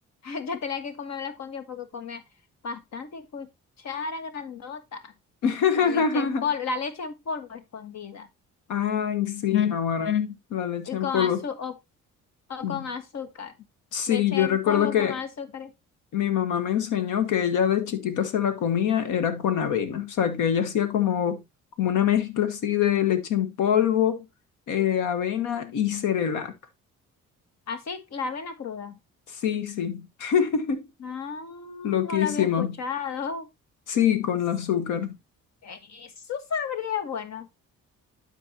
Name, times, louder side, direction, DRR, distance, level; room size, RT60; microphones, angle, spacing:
voice 1, 0.2-2.2 2.6-3.5 3.8-5.1 5.7-8.3 10.8-11.8 12.5-13.6 14.1-15.7 27.7-29.0 31.0-33.5 35.6-37.5, left 5 dB, 60° left, 1.5 m, -33 dB
voice 2, 5.4-6.4 8.7-11.4 12.6-12.8 13.9-15.1 16.1-21.4 21.8-24.2 24.7-26.5 29.3-30.9 31.8-32.7 33.9-35.1, left 9 dB, 90° left, 1.5 m, -24 dB
12.0 x 4.6 x 2.8 m
cardioid pair, 90°, 30 cm